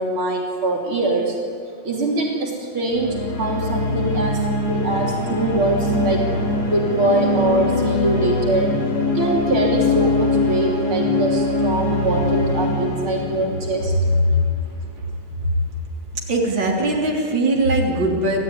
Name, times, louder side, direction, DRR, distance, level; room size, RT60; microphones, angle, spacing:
voice 1, 0.0-1.4 1.8-6.3 6.7-8.7 9.1-13.9, right 2 dB, 80° right, -1 dB, 4.4 m, -23 dB
sound 1, 2.9-14.5, left 2 dB, 65° left, 4.4 m, -22 dB
voice 2, 16.3-18.4, right 2 dB, 60° right, -2 dB, 4.4 m, -20 dB
28.0 x 17.5 x 9.9 m, 2.1 s
omnidirectional pair, 2.3 m